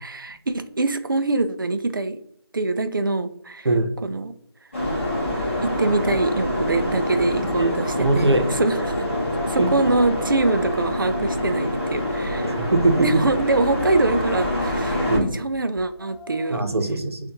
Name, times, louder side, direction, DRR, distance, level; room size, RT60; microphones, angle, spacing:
voice 1, 0.0-2.2 2.5-3.7 4.0-4.3 5.6-9.1 9.5-12.5 13.0-16.7, right 2 dB, 50° right, 10 dB, 0.4 m, -24 dB
sound 1, 4.7-15.2, left 1 dB, 30° left, 1.3 m, -26 dB
voice 2, 7.6-8.6 9.6-9.7 12.4-13.0 15.1-15.3 16.5-17.2, right 2 dB, 75° right, 5 dB, 0.9 m, -21 dB
sound 2, 8.8-16.6, left 5 dB, 5° left, 1.2 m, -43 dB
6.7 x 2.5 x 2.8 m, 0.72 s
figure-of-eight pair, 175°, 14 cm